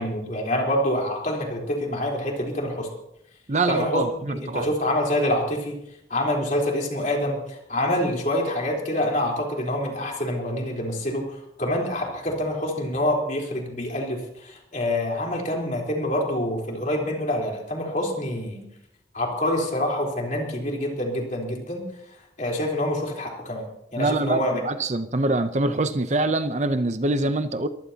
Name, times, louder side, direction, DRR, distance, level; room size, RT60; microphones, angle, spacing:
voice 1, 0.0-2.9 3.7-5.8 6.1-18.6 19.1-21.8 22.4-23.6 23.9-24.5, left 1 dB, 45° left, 3.9 m, -26 dB
voice 2, 3.5-4.7 24.0-27.7, right 2 dB, 40° right, 0.6 m, -24 dB
23.5 x 15.0 x 2.9 m
head